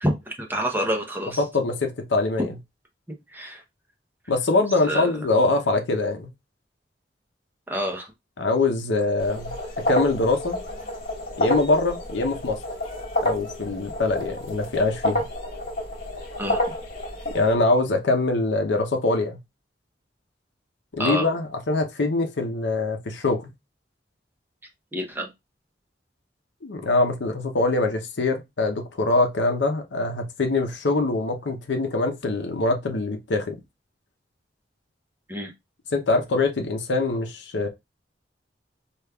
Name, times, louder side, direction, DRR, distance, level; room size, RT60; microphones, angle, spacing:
voice 1, 0.0-1.4 3.3-3.6 4.8-5.2 7.7-8.1 16.4-16.6 21.0-21.3 24.9-25.3 35.3-35.5, equal, 10° right, 0.6 m, -27 dB
voice 2, 1.4-2.5 4.3-6.3 8.4-10.6 11.4-12.6 13.2-15.3 17.3-19.4 20.9-23.5 26.6-33.6 35.9-37.7, left 2 dB, 75° left, 0.6 m, -23 dB
sound 1, 9.2-17.5, left 1 dB, 55° left, 1.4 m, -29 dB
5.0 x 2.3 x 2.2 m
head